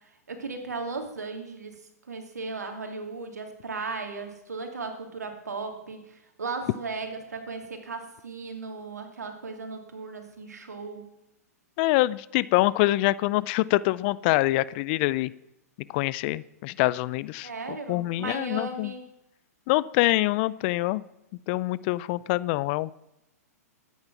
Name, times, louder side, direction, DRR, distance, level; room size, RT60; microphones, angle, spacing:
voice 1, 0.3-1.7 2.1-11.1 17.4-19.1, right 4 dB, 80° right, 5 dB, 2.6 m, -36 dB
voice 2, 11.8-15.3 15.9-18.9 19.7-21.0 21.5-22.9, left 19 dB, 40° left, 20 dB, 0.5 m, -25 dB
13.5 x 9.5 x 6.0 m, 0.88 s
hypercardioid pair, 115°, 9 cm